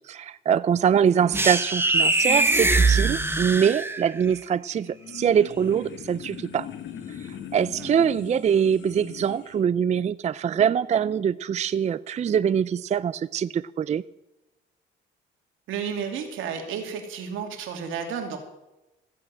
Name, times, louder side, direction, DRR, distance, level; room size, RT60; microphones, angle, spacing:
voice 1, 0.1-6.7 7.5-14.0, right 8 dB, 35° right, 17 dB, 0.4 m, -23 dB
sound 1, 1.3-4.2, right 2 dB, 10° right, 1.2 m, -22 dB
sound 2, 4.7-9.6, left 8 dB, 70° left, 1.7 m, -40 dB
voice 2, 15.7-18.4, right 7 dB, 85° right, 4 dB, 2.7 m, -32 dB
15.0 x 8.5 x 7.6 m, 0.97 s
cardioid pair, 90°, 20 cm